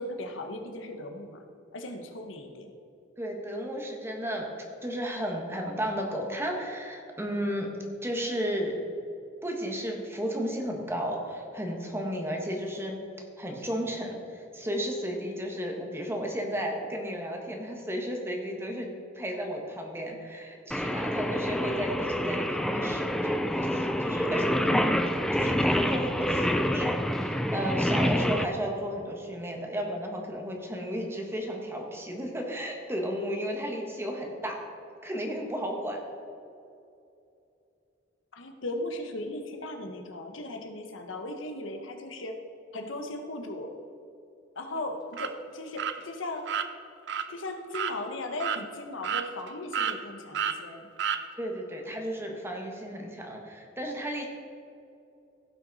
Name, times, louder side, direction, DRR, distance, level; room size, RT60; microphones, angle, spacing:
voice 1, 0.0-1.4 1.7-2.7 38.3-42.4 42.7-43.8 44.6-46.5 47.3-50.9, left 1 dB, 80° left, 5 dB, 1.1 m, -37 dB
voice 2, 3.2-4.5 4.8-7.7 8.0-8.7 9.4-13.0 13.4-34.7 35.0-36.0 51.4-54.3, equal, 15° right, 1 dB, 1.4 m, -33 dB
Singing, 20.7-28.4, equal, 5° left, 0.4 m, -27 dB
sound 1, 45.1-45.3 45.8-46.0 46.5-46.7 47.1-47.3 47.7-48.0 48.4-48.6 49.0-49.5 49.7-50.0 50.3-50.6 51.0-51.2, right 8 dB, 65° right, 0.6 m, -30 dB
16.0 x 6.0 x 4.1 m, 2.6 s
head